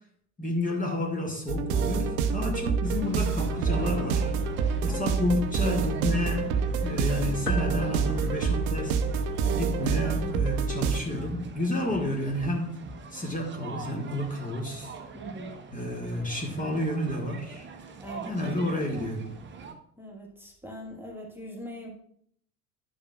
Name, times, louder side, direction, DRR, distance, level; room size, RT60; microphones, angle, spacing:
voice 1, 0.4-4.3 4.8-9.0 9.5-12.8 13.1-14.9 15.7-17.7 18.2-19.3, left 1 dB, 15° left, 0 dB, 1.5 m, -30 dB
sound 1, 1.5-11.0, right 5 dB, 60° right, 0.8 m, -27 dB
sound 2, 2.8-19.7, right 4 dB, 25° right, 0.9 m, -42 dB
voice 2, 4.9-5.2 15.1-15.6 18.0-18.4 20.0-21.9, equal, 5° right, -1 dB, 1.6 m, -41 dB
sound 3, 7.5-9.2, left 6 dB, 90° left, 0.5 m, -40 dB
11.0 x 7.1 x 2.4 m, 0.67 s
figure-of-eight pair, 65°, 46 cm